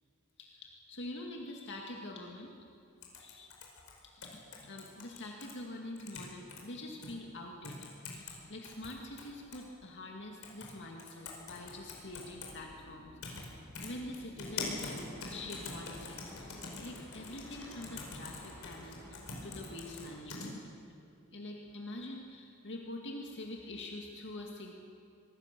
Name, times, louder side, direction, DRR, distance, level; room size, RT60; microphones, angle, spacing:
voice 1, 0.4-2.5 3.2-3.6 4.1-13.5 13.8-15.0 15.3-20.6 21.3-24.7, left 1 dB, 55° left, 0 dB, 2.1 m, -45 dB
sound 1, 3.0-5.5 6.0-6.6 7.0-7.1 7.6-8.4 8.6-9.6 10.4-10.7 11.0-12.5 13.2-13.5 13.7-20.5, left 4 dB, 75° left, 5.1 m, -44 dB
sound 2, 11.4-18.2, equal, 5° right, 3.8 m, -57 dB
sound 3, 14.4-20.2, left 1 dB, 15° left, 7.9 m, -52 dB
25.0 x 21.0 x 6.8 m, 2.5 s
head